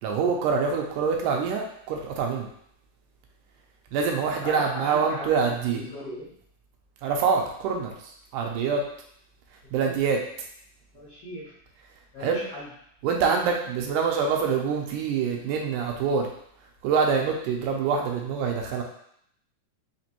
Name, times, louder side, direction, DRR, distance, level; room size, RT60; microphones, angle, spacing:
voice 1, 0.0-2.5 3.9-5.8 7.0-7.9 8.3-8.8 9.7-10.2 12.2-12.4 13.0-16.3 16.8-18.8, right 5 dB, 80° right, 1 dB, 2.0 m, -25 dB
voice 2, 4.4-5.4 5.7-6.3 9.6-10.0 10.9-11.5 12.1-12.7, left 1 dB, 60° left, -8 dB, 1.6 m, -37 dB
5.1 x 3.0 x 2.9 m, 0.69 s
omnidirectional pair, 3.8 m